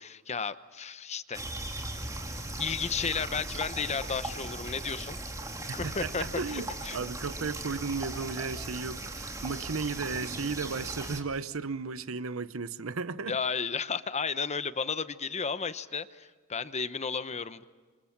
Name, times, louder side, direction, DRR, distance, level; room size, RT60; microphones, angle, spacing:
voice 1, 0.0-1.9 2.4-5.2 5.7-7.0 13.3-17.6, left 5 dB, 30° left, 0.9 m, -33 dB
sound 1, 1.3-11.2, right 2 dB, 15° right, 2.7 m, -38 dB
voice 2, 5.8-13.4, right 4 dB, 70° right, 0.9 m, -35 dB
27.5 x 27.5 x 6.0 m
head